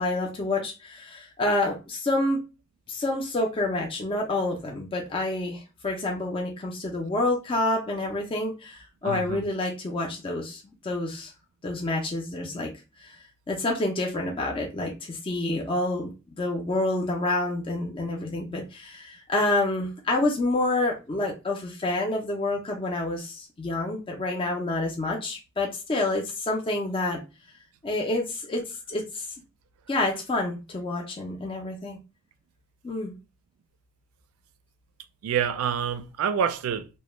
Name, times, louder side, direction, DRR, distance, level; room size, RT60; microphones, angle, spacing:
voice 1, 0.0-2.4 2.9-11.3 11.6-12.7 13.0-13.1 13.5-16.1 16.4-27.2 27.8-29.3 29.9-32.0 32.8-33.1, left 2 dB, 25° left, 0.4 m, -28 dB
voice 2, 9.0-9.4 35.2-36.9, right 8 dB, 85° right, 0.3 m, -27 dB
2.1 x 2.0 x 3.0 m
head